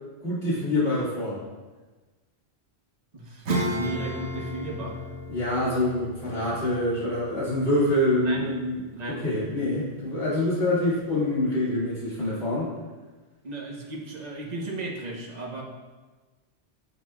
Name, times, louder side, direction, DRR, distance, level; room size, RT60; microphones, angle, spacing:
voice 1, 0.2-1.4 5.3-8.8 9.2-12.7, left 1 dB, 65° left, -9 dB, 2.7 m, -25 dB
voice 2, 3.1-5.0 8.2-8.4 8.9-9.2 13.4-15.6, right 2 dB, 40° right, -1 dB, 1.1 m, -35 dB
Acoustic guitar / Strum, 3.4-9.5, equal, 80° right, 1.4 m, -34 dB
8.7 x 6.9 x 2.4 m, 1.3 s
omnidirectional pair, 1.1 m